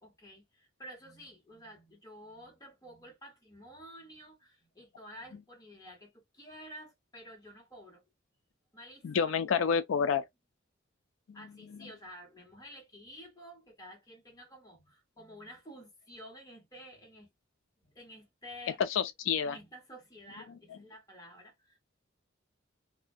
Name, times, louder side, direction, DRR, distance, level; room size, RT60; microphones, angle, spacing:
voice 1, 0.0-8.0 8.7-9.7 11.3-17.3 17.8-18.8 19.4-21.8, equal, 20° left, 1.2 m, -51 dB
voice 2, 9.0-10.3 18.8-19.6, left 6 dB, 90° left, 0.4 m, -28 dB
2.4 x 2.1 x 2.5 m
head